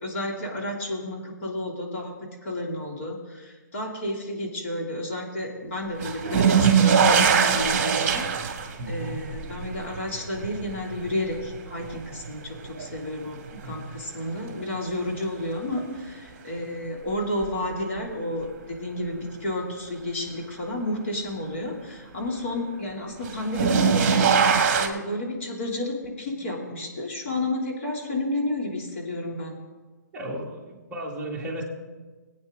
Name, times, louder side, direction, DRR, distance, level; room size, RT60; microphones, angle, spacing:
voice 1, 0.0-8.6 8.9-29.6, left 1 dB, 40° left, -1 dB, 2.9 m, -31 dB
sound 1, 6.0-13.0 13.5-14.2 15.8-15.9 17.4-17.5 23.2-24.9, right 6 dB, 35° right, 1.6 m, -22 dB
voice 2, 8.8-9.3 13.5-13.8 30.1-31.6, right 1 dB, 10° right, -4 dB, 1.8 m, -35 dB
20.5 x 8.9 x 3.9 m, 1.3 s
hypercardioid pair, 160°, 10 cm